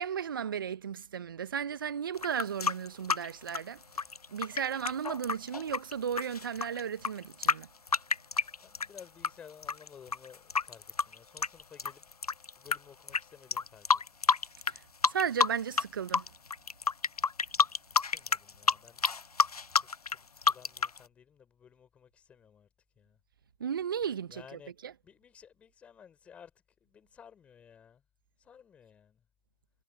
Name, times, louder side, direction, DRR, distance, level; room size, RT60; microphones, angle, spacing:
voice 1, 0.0-4.0 4.3-7.7 14.7-16.3 23.6-24.9, right 8 dB, 35° right, 1.6 m, -35 dB
sound 1, 2.2-9.3 9.6-12.8 13.1-13.2 13.5-14.8 15.0-15.8 16.1-21.0, left 5 dB, 75° left, 0.7 m, -28 dB
voice 2, 8.6-12.0 12.6-13.9 18.1-19.0 19.8-22.7 23.0-23.2 24.3-24.7 25.0-26.5 26.8-28.0 28.4-29.2, left 7 dB, 5° left, 4.4 m, -55 dB
figure-of-eight pair, 155°, 19 cm